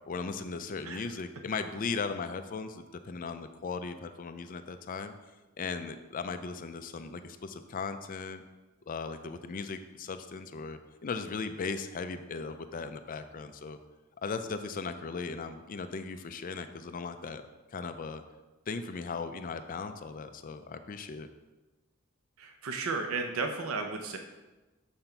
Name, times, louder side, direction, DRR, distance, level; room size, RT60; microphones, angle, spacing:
voice 1, 0.1-5.1 5.6-8.4 8.9-13.8 14.2-17.4 17.7-18.2 18.7-21.3, left 4 dB, 40° left, 9 dB, 0.4 m, -37 dB
voice 2, 22.4-24.2, right 4 dB, 90° right, 5 dB, 0.7 m, -34 dB
6.9 x 5.7 x 4.4 m, 1.2 s
head